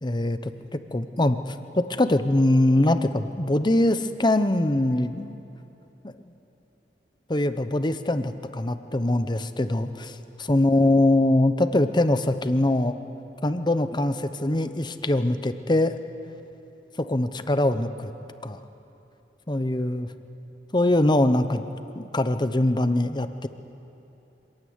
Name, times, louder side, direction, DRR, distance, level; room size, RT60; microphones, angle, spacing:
voice 1, 0.0-5.4 6.0-6.1 7.3-13.0 13.4-15.9 17.0-18.1 18.4-18.6 19.5-20.1 20.7-21.6 21.9-23.5, left 1 dB, 25° left, 10 dB, 0.9 m, -23 dB
25.0 x 16.0 x 9.6 m, 2.9 s
head